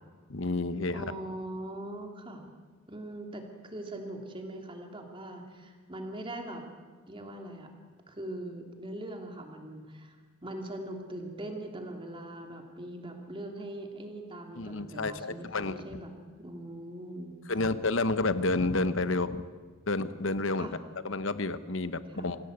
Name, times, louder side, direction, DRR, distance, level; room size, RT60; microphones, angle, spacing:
voice 1, 0.3-1.0 14.6-15.9 17.5-19.5 19.9-20.7 21.0-22.4, left 2 dB, 60° left, 13 dB, 1.0 m, -30 dB
voice 2, 0.9-2.4 2.9-6.6 7.1-7.7 8.1-10.1 10.4-16.1 16.4-17.7 20.6-20.8 22.1-22.3, right 1 dB, 25° right, 3 dB, 3.0 m, -41 dB
26.5 x 17.5 x 8.2 m, 1.5 s
head